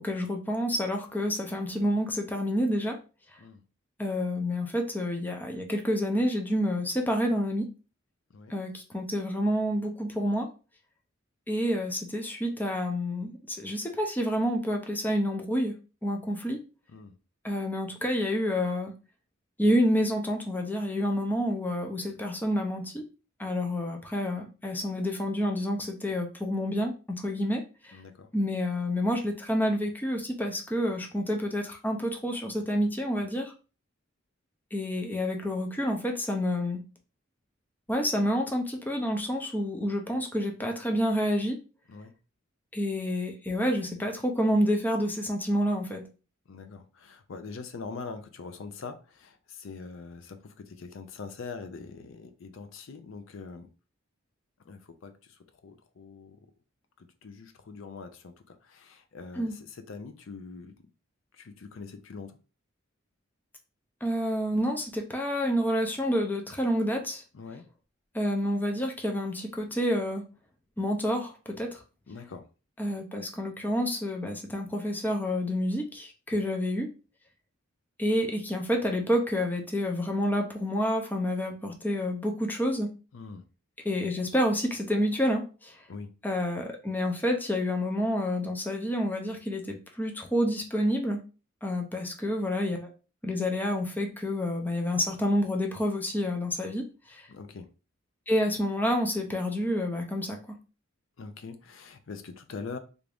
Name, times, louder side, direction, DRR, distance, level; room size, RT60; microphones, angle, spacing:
voice 1, 0.0-3.0 4.0-7.7 8.5-10.5 11.5-15.7 16.0-16.6 17.4-18.9 19.6-23.0 23.4-28.0 28.3-33.5 34.7-36.8 37.9-41.6 42.7-46.0 59.4-59.5 64.0-67.2 68.1-70.2 70.8-71.8 72.8-76.9 78.0-82.9 83.8-85.8 86.2-91.2 91.6-92.9 93.2-97.3 98.3-100.4, equal, 10° left, 0.5 m, -28 dB
voice 2, 27.9-28.3 41.9-42.1 46.5-53.7 54.7-56.4 57.0-60.7 61.3-62.4 67.3-67.7 72.1-72.5 76.4-76.5 83.1-83.4 85.9-86.1 97.3-97.7 101.2-102.8, left 4 dB, 70° left, 0.5 m, -43 dB
3.5 x 2.5 x 3.3 m
head